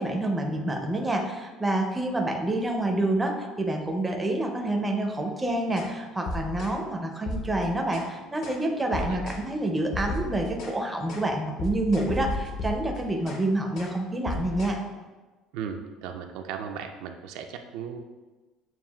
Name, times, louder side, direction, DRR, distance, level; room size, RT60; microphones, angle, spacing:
voice 1, 0.0-14.8, right 1 dB, 10° right, 2 dB, 0.4 m, -28 dB
sound 1, 5.8-5.9 6.3-6.8 7.3-8.1 8.4-8.6 8.9-9.5 9.9-10.8 11.1-11.3 11.6-13.4 13.7-14.0 14.3-14.8, left 2 dB, 50° left, 0.5 m, -34 dB
voice 2, 15.5-18.0, right 7 dB, 75° right, 5 dB, 0.4 m, -36 dB
7.1 x 2.4 x 2.3 m, 1.2 s
cardioid pair, 165°, 0 cm